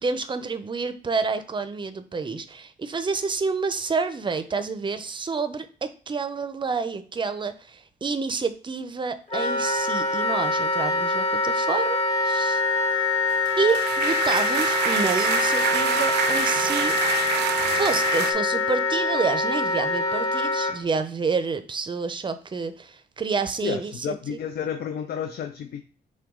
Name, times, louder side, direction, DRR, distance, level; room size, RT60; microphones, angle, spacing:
voice 1, 0.0-12.6 13.6-17.0 17.7-24.4, right 4 dB, 30° right, 11 dB, 0.5 m, -28 dB
Wind instrument woodwind instrument, 9.3-20.7, left 3 dB, 40° left, 1.2 m, -24 dB
sound 1, 13.3-18.3, right 9 dB, 80° right, 0.5 m, -27 dB
voice 2, 23.6-25.8, left 8 dB, 65° left, 8 dB, 0.4 m, -31 dB
5.9 x 2.2 x 3.6 m, 0.42 s
cardioid pair, 95°, 17 cm